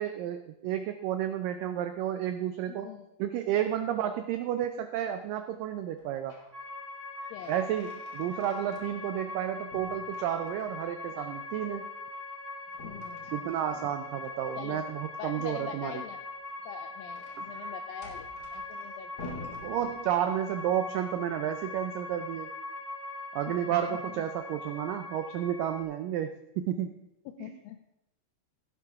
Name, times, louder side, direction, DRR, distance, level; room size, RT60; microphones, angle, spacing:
voice 1, 0.0-2.9 3.2-6.4 7.5-11.9 13.3-16.0 17.4-17.5 19.6-22.5 23.3-26.9 27.4-27.6, right 10 dB, 85° right, 8 dB, 1.9 m, -31 dB
voice 2, 2.7-3.1 7.3-7.5 9.2-9.3 11.1-11.5 12.8-13.3 14.6-14.8 15.2-16.2 16.7-19.1 19.4-19.5 23.7-24.0 27.3-27.8, left 10 dB, 85° left, 7 dB, 2.0 m, -44 dB
sound 1, 5.9-6.6 6.9-9.4 9.7-10.9 12.7-14.3 16.3-20.5, left 2 dB, 70° left, 0.9 m, -49 dB
sound 2, 6.5-25.8, left 2 dB, 10° right, 1.3 m, -41 dB
16.0 x 8.6 x 3.5 m, 0.86 s
omnidirectional pair, 4.6 m